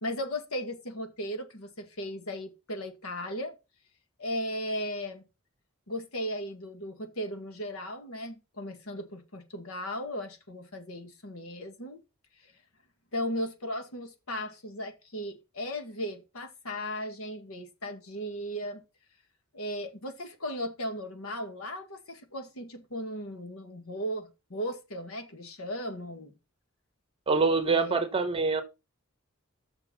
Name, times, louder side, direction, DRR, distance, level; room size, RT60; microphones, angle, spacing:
voice 1, 0.0-3.6 4.2-5.2 5.9-12.0 13.1-18.8 19.5-26.3 27.7-28.0, equal, 80° left, 1.8 m, -36 dB
voice 2, 27.3-28.6, right 4 dB, 25° right, 1.1 m, -25 dB
6.4 x 6.3 x 5.9 m
head